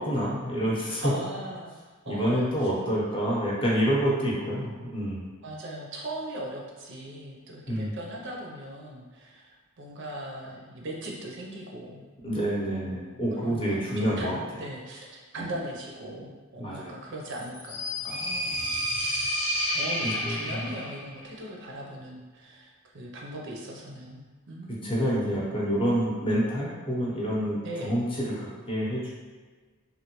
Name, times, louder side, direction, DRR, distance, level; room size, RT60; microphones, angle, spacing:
voice 1, 0.0-1.1 2.1-5.2 7.7-7.9 12.2-14.4 15.4-15.5 16.6-16.9 20.0-20.6 24.8-29.1, equal, 25° left, -5 dB, 0.7 m, -27 dB
voice 2, 1.0-2.7 5.4-12.1 12.8-13.1 13.4-18.8 19.1-19.2 19.7-24.9 27.6-27.9, right 1 dB, 60° right, -2 dB, 0.5 m, -39 dB
sound 1, 17.3-21.0, left 1 dB, 85° left, 1.0 m, -30 dB
3.1 x 2.2 x 2.9 m, 1.4 s
head